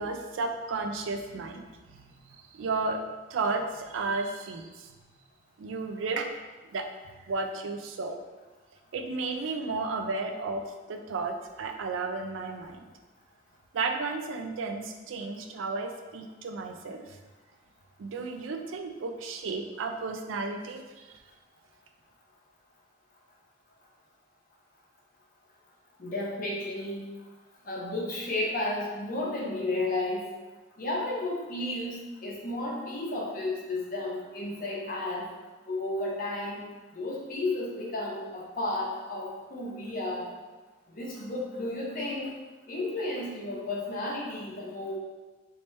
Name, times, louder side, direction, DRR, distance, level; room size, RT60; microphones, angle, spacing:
voice 1, 0.0-3.0 3.3-5.0 5.6-6.3 6.6-8.2 8.9-12.9 13.7-17.2 18.0-21.2, right 3 dB, 75° right, 5 dB, 0.4 m, -33 dB
voice 2, 26.0-27.0 27.6-30.2 30.8-31.9 32.2-35.3 35.7-36.6 36.9-40.3 40.9-42.3 42.7-45.0, left 2 dB, 45° left, -3 dB, 0.7 m, -32 dB
3.1 x 3.0 x 3.1 m, 1.2 s
head